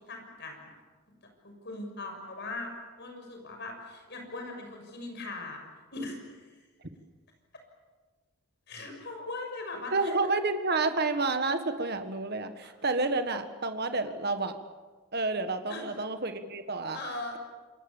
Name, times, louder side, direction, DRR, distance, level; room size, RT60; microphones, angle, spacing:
voice 1, 0.1-0.7 1.4-2.7 3.0-5.7 5.9-6.6 8.7-10.1 12.6-12.7 15.7-15.9 16.9-17.4, left 2 dB, 50° left, 3 dB, 6.6 m, -40 dB
voice 2, 9.9-14.5 15.1-17.0, right 3 dB, 45° right, 8 dB, 1.7 m, -29 dB
27.5 x 23.0 x 7.3 m, 1.4 s
head